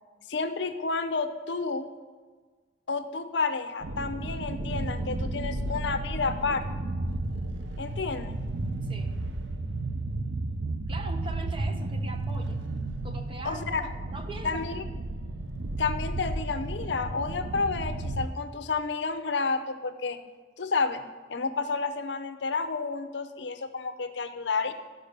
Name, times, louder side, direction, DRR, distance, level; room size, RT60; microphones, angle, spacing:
voice 1, 0.3-1.9 2.9-6.6 7.8-8.4 13.4-13.8 14.4-14.8 15.8-20.2 20.6-21.0 21.3-24.7, left 4 dB, 70° left, 9 dB, 0.7 m, -30 dB
sound 1, 3.8-18.3, right 2 dB, 80° right, 0.7 m, -33 dB
voice 2, 8.8-9.1 10.9-12.6 13.0-14.7, right 2 dB, 30° right, 5 dB, 0.9 m, -41 dB
12.0 x 5.3 x 6.5 m, 1.4 s
head